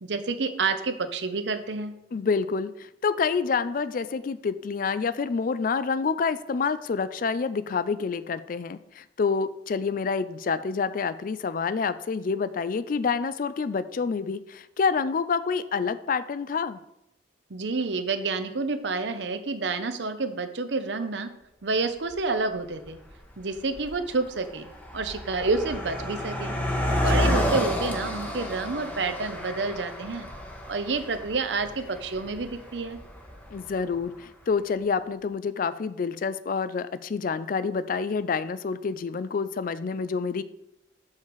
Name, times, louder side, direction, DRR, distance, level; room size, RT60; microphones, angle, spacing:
voice 1, 0.0-1.9 17.5-21.3 21.6-23.0 23.4-24.7 24.9-26.5 26.9-30.3 30.7-33.0, right 3 dB, 80° right, 9 dB, 0.7 m, -29 dB
voice 2, 2.1-16.8 27.1-27.3 33.5-40.4, left 5 dB, 50° left, 14 dB, 0.4 m, -28 dB
Car passing by, 22.1-22.2 23.0-23.2 23.5-33.9, left 1 dB, 10° left, 1.0 m, -30 dB
6.7 x 5.6 x 4.6 m, 0.87 s
head